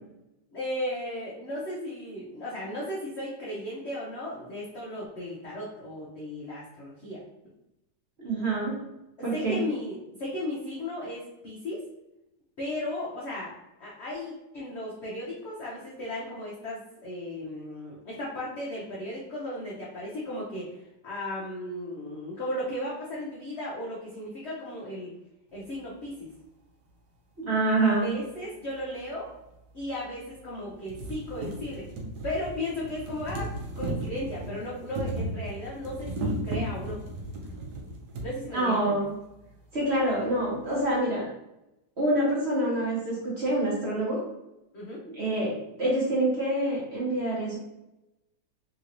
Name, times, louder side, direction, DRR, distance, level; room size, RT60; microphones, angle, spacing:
voice 1, 0.5-7.2 9.3-11.8 12.6-13.5 13.8-20.7 21.0-25.1 25.5-26.3 27.7-29.3 29.7-31.9 32.2-37.0 38.2-39.0 44.7-45.0, left 1 dB, 75° left, -5 dB, 0.6 m, -35 dB
voice 2, 8.2-8.7 9.2-9.6 27.4-28.1 38.5-39.1 39.7-41.2 42.0-44.2 45.1-47.6, right 1 dB, 50° right, -6 dB, 0.8 m, -26 dB
sound 1, 28.7-28.8 29.8-29.9 30.3-30.4 30.7-38.3 39.2-39.3 39.5-39.6, right 1 dB, 65° right, 1.1 m, -35 dB
3.3 x 2.9 x 2.5 m, 0.91 s
omnidirectional pair, 2.0 m